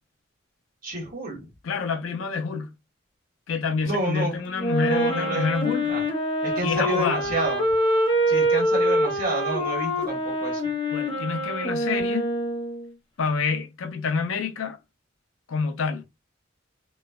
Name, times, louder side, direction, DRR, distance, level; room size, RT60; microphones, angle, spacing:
voice 1, 0.8-1.4 3.8-4.4 4.8-5.5 5.9-6.0 6.4-7.6 8.3-10.7, right 1 dB, 45° right, 1.3 m, -29 dB
voice 2, 1.6-2.7 3.5-5.9 6.6-7.3 10.9-12.3 13.2-14.8 15.5-16.0, left 5 dB, 80° left, 0.5 m, -27 dB
Wind instrument woodwind instrument, 4.6-12.9, equal, 25° left, 0.6 m, -25 dB
3.0 x 2.1 x 2.2 m
head